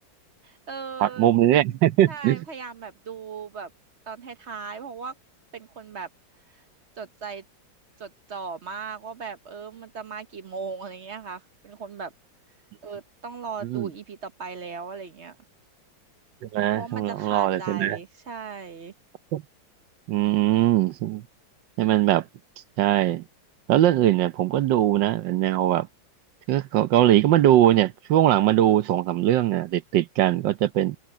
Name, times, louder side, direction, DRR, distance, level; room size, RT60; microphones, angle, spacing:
voice 1, 0.4-1.3 2.1-3.7 4.1-5.1 5.5-6.1 6.5-6.6 7.0-7.4 8.0-12.1 12.8-15.4 16.7-18.9, right 5 dB, 45° right, 0.9 m, -37 dB
voice 2, 1.0-2.4 13.7-13.9 16.5-18.0 19.3-19.4 20.1-21.2 21.8-22.2 22.8-23.2 23.7-25.9 26.5-31.0, right 12 dB, 75° right, 1.4 m, -21 dB
omnidirectional pair, 2.1 m